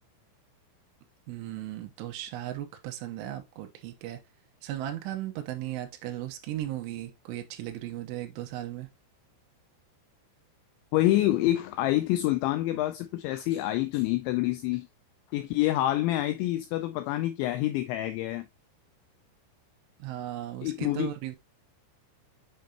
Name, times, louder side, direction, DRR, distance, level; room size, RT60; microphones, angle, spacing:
voice 1, 1.3-4.2 4.6-8.9 20.0-21.4, right 13 dB, 80° right, 3.4 m, -36 dB
voice 2, 10.9-14.9 15.3-18.5 20.6-21.1, left 15 dB, 90° left, 2.6 m, -27 dB
7.9 x 5.2 x 2.8 m
omnidirectional pair, 5.8 m